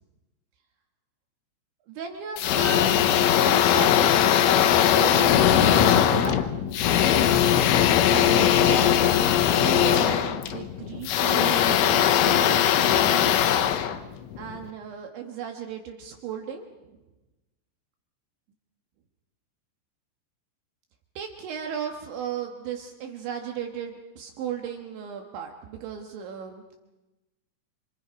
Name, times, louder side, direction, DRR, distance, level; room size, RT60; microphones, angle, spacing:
voice 1, 1.9-4.3 4.9-6.4 8.0-13.4 14.4-17.0 21.2-26.6, right 8 dB, 70° right, 3 dB, 3.6 m, -35 dB
sound 1, 2.4-14.6, left 10 dB, 80° left, 3.6 m, -20 dB
28.0 x 28.0 x 5.2 m, 1.1 s
omnidirectional pair, 6.0 m